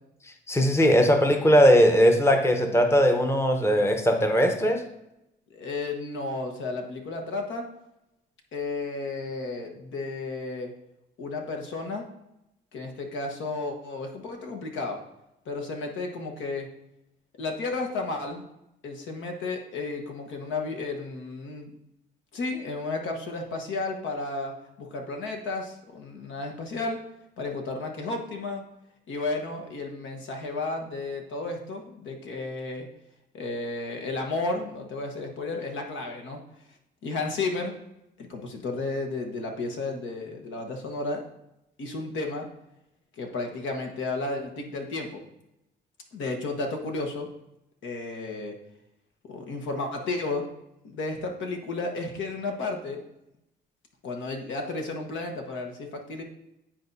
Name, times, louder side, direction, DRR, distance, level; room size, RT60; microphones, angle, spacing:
voice 1, 0.5-4.8, equal, 15° left, 4 dB, 0.8 m, -19 dB
voice 2, 5.5-7.7 8.5-10.7 11.2-12.1 12.7-15.0 15.4-16.7 17.4-18.4 18.8-21.7 22.3-27.0 27.4-28.6 29.1-32.9 33.3-36.4 37.0-37.7 38.2-41.3 41.8-42.5 43.2-45.3 46.1-47.3 47.8-48.6 49.3-50.5 50.8-53.0 54.0-56.2, left 3 dB, 75° left, 3 dB, 1.2 m, -33 dB
10.0 x 4.3 x 2.7 m, 0.87 s
cardioid pair, 90°, 20 cm